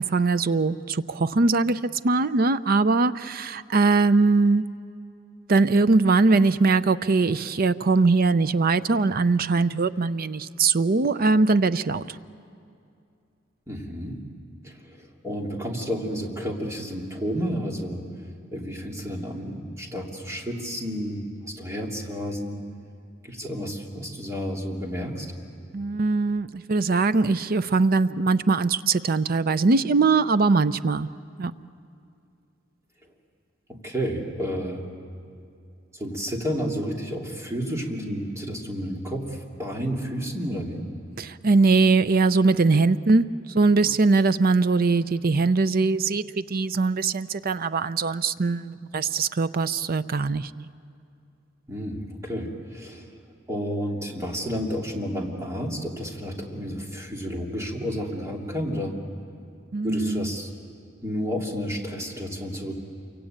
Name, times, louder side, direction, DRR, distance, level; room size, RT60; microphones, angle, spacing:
voice 1, 0.0-4.6 5.5-12.0 25.7-31.1 31.4-31.5 41.2-50.7 59.7-60.3, right 3 dB, 50° right, 14 dB, 0.6 m, -21 dB
voice 2, 13.7-14.2 14.6-18.0 18.5-22.6 23.2-25.3 33.7-34.8 35.9-40.8 51.7-53.1 53.5-58.9 59.8-60.5 61.0-62.8, equal, 15° right, -1 dB, 2.9 m, -31 dB
28.0 x 24.0 x 8.9 m, 2.5 s
head